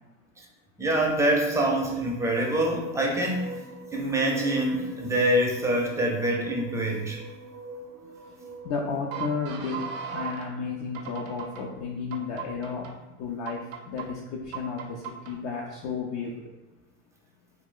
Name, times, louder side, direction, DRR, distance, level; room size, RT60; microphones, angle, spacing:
voice 1, 0.8-3.5 3.9-7.2, right 1 dB, 10° right, -1 dB, 0.5 m, -25 dB
sound 1, 1.6-10.5 10.9-11.6 12.1-12.9 13.5-14.1 14.5-15.3, right 4 dB, 85° right, 0.6 m, -40 dB
voice 2, 8.6-12.9 13.2-13.6 13.9-16.3, left 5 dB, 45° left, -1 dB, 0.4 m, -33 dB
2.3 x 2.1 x 3.8 m, 1.1 s
hypercardioid pair, 95°, 39 cm